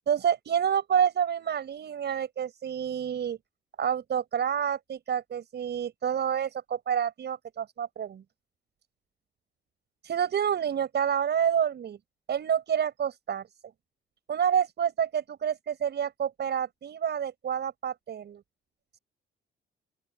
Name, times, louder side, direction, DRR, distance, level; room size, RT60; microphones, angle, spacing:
voice 1, 0.1-3.4 3.8-8.2 10.0-12.0 12.3-13.4 14.3-18.4, right 8 dB, 60° right, 7.1 m, -28 dB
open air
cardioid pair, 90°, 20 cm